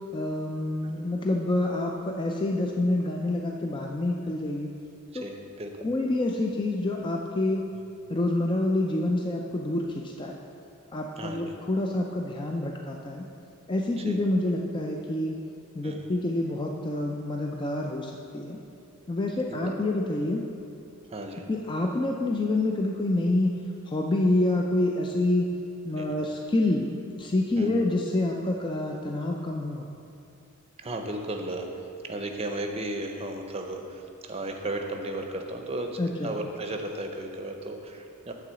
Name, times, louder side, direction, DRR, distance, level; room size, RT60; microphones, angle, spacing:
voice 1, 0.1-4.7 5.1-5.3 5.8-7.6 8.1-10.4 10.9-13.3 13.7-15.4 15.7-18.6 19.1-20.4 21.5-23.6 23.9-25.5 25.8-29.9 36.0-36.3, left 2 dB, 20° left, 1 dB, 0.4 m, -27 dB
voice 2, 5.1-5.9 11.2-11.5 14.0-14.2 15.8-16.1 19.5-19.7 21.1-21.4 26.0-26.1 27.6-27.8 30.8-38.3, right 1 dB, 25° right, 4 dB, 0.6 m, -35 dB
9.1 x 3.8 x 6.8 m, 2.5 s
head